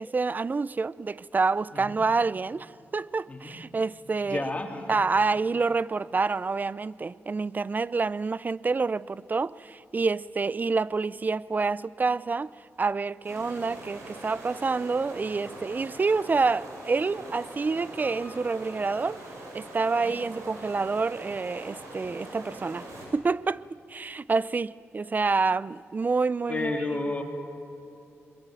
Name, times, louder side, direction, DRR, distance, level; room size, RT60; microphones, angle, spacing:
voice 1, 0.0-4.5 4.9-12.5 12.8-19.2 19.5-22.8 23.1-27.0, right 4 dB, 35° right, 0.6 m, -28 dB
voice 2, 3.3-3.6 4.3-4.8 20.0-20.3 26.5-27.2, left 2 dB, 25° left, 3.7 m, -31 dB
sound 1, 13.2-23.1, right 1 dB, 85° right, 5.9 m, -43 dB
Piano, 18.0-20.0 20.3-20.4, left 1 dB, 20° right, 6.3 m, -51 dB
22.5 x 22.0 x 9.1 m
cardioid pair, 70°, 5 cm